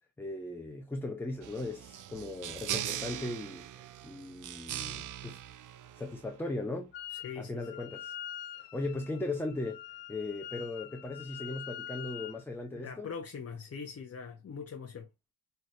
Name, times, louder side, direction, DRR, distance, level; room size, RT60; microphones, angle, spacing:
voice 1, 0.2-5.4 6.0-6.9 7.4-8.2 8.6-9.8 10.1-13.1, left 2 dB, 5° left, 0.7 m, -38 dB
sound 1, 1.4-6.4, right 11 dB, 40° right, 0.4 m, -40 dB
Wind instrument woodwind instrument, 6.9-7.3 7.6-12.4, left 11 dB, 60° left, 0.7 m, -44 dB
voice 2, 7.1-7.8 12.7-15.3, left 6 dB, 30° left, 0.9 m, -43 dB
6.2 x 2.7 x 2.7 m
cardioid pair, 85°, 49 cm